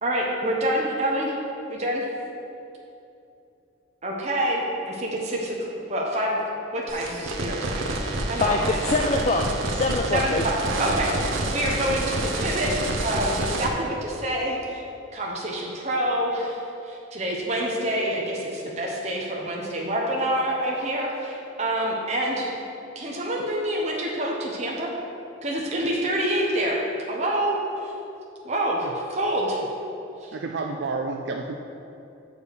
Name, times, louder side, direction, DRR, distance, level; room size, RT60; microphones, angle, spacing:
voice 1, 0.0-1.4 1.7-2.1 4.0-6.4 6.7-9.0 10.1-12.7 13.0-14.8 15.1-22.5 22.9-24.9 25.4-26.8 27.1-27.6 27.8-27.9 28.4-29.6 30.2-30.3, right 1 dB, 35° right, -3 dB, 0.9 m, -27 dB
sound 1, 6.9-13.7, right 2 dB, 85° right, 0.9 m, -28 dB
voice 2, 7.8-10.4, left 3 dB, 35° left, 2 dB, 0.3 m, -25 dB
voice 3, 30.3-31.5, right 3 dB, 60° right, 3 dB, 0.4 m, -30 dB
6.9 x 4.7 x 6.6 m, 2.8 s
head